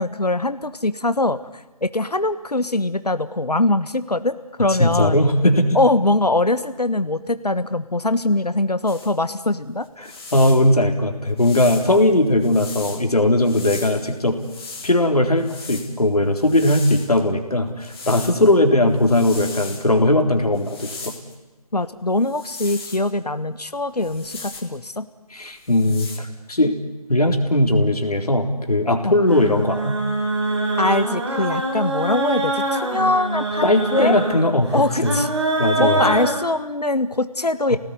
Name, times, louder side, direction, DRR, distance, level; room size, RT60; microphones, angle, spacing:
voice 1, 0.0-5.2 5.7-9.9 21.7-25.1 29.0-29.1 30.8-34.1 34.7-35.3 35.8-37.8, left 2 dB, 85° left, 12 dB, 1.5 m, -22 dB
voice 2, 4.8-5.8 10.0-14.4 14.8-21.1 25.3-26.8 27.1-30.0 33.6-35.1 35.6-36.0 37.7-37.8, left 1 dB, 70° left, 5 dB, 3.9 m, -19 dB
sound 1, 8.9-9.1 9.8-10.7 11.4-13.0 13.4-14.9 15.4-17.2 17.8-18.5 18.9-19.9 20.5-21.3 22.2-23.1 24.0-24.8 25.5-26.2, left 3 dB, 40° left, 4.0 m, -37 dB
sound 2, 29.3-36.3, right 2 dB, 45° right, 6.5 m, -24 dB
30.0 x 19.0 x 9.8 m, 1.1 s
figure-of-eight pair, 160°, 20 cm